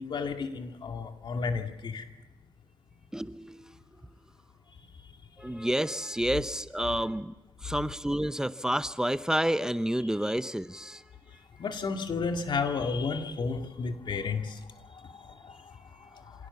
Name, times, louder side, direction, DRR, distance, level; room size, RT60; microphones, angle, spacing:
voice 1, 0.0-2.0 10.2-10.3 11.6-14.5 15.4-15.5, left 4 dB, 65° left, 6 dB, 2.2 m, -32 dB
voice 2, 3.1-3.7 5.4-7.3 7.6-11.0, right 1 dB, 5° right, 13 dB, 0.8 m, -29 dB
26.0 x 17.0 x 7.1 m, 1.1 s
cardioid pair, 60°, 9 cm